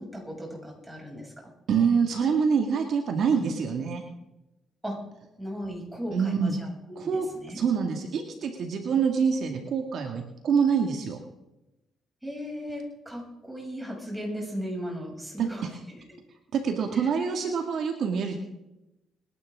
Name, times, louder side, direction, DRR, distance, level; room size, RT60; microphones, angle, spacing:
voice 1, 0.0-1.3 4.8-5.0 5.4-7.6 12.2-16.0 16.9-17.1, equal, 5° right, -1 dB, 6.9 m, -37 dB
voice 2, 1.7-4.0 6.1-6.5 7.0-7.3 7.5-11.2 15.4-15.7 16.5-18.4, right 6 dB, 65° right, 3 dB, 2.0 m, -26 dB
26.0 x 11.5 x 3.7 m, 0.93 s
cardioid pair, 90°, 0 cm